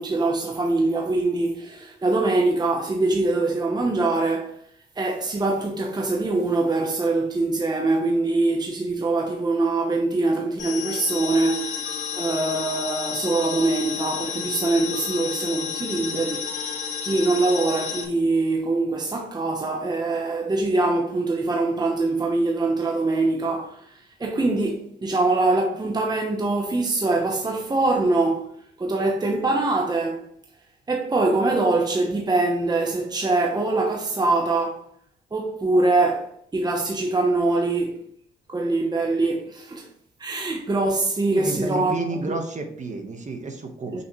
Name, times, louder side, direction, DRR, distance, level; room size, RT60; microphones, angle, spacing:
voice 1, 0.0-4.5 5.0-28.5 28.8-30.3 30.9-34.9 35.3-38.0 38.5-39.9 40.2-41.9 42.3-42.4 43.9-44.0, right 2 dB, 20° right, 1.0 m, -23 dB
sound 1, 10.6-18.0, left 7 dB, 75° left, 2.1 m, -31 dB
voice 2, 41.3-44.0, right 3 dB, 40° right, 1.3 m, -31 dB
6.3 x 5.7 x 3.2 m
cardioid pair, 90°, 20 cm